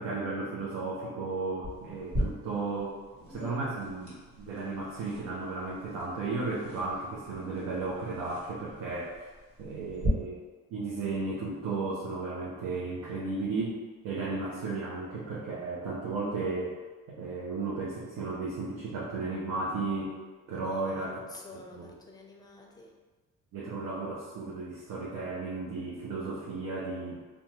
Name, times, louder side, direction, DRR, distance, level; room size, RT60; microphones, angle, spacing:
voice 1, 0.0-3.0 3.3-9.2 9.6-10.4 10.7-13.8 14.0-16.8 17.1-20.1 20.5-21.1 21.8-21.9 23.5-27.2, right 3 dB, 80° right, -7 dB, 0.7 m, -34 dB
sound 1, 1.6-10.1, right 1 dB, 50° right, 1.4 m, -41 dB
voice 2, 20.5-23.0, left 2 dB, 15° left, 0 dB, 0.5 m, -48 dB
2.5 x 2.3 x 3.0 m, 1.3 s
cardioid pair, 90°, 30 cm